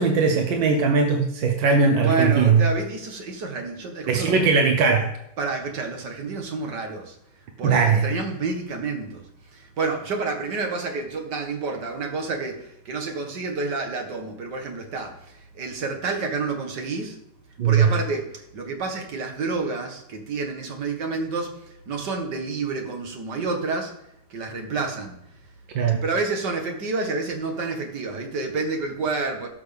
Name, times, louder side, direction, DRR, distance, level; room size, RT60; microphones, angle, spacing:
voice 1, 0.0-2.6 4.1-5.1 7.6-8.1 17.6-18.0 25.7-26.0, right 5 dB, 85° right, 4 dB, 1.7 m, -19 dB
voice 2, 2.0-4.5 5.4-7.2 7.6-9.2 9.5-17.2 17.6-23.9 24.3-25.2 26.0-29.5, right 3 dB, 65° right, 3 dB, 2.3 m, -29 dB
17.5 x 6.2 x 3.5 m, 0.79 s
omnidirectional pair, 2.0 m